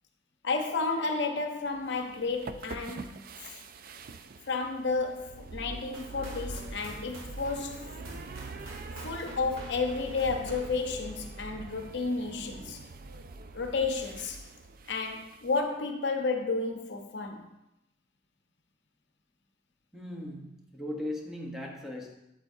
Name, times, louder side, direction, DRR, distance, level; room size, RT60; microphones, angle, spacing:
voice 1, 0.4-3.6 4.5-7.9 9.0-12.8 13.5-14.4 14.9-17.5, left 4 dB, 55° left, 0.7 m, -32 dB
sound 1, 1.7-15.6, right 2 dB, 45° right, 0.4 m, -44 dB
sound 2, 5.9-11.8, right 2 dB, 90° right, 1.6 m, -49 dB
voice 2, 19.9-22.2, left 1 dB, ahead, 0.9 m, -38 dB
8.3 x 8.2 x 2.6 m
head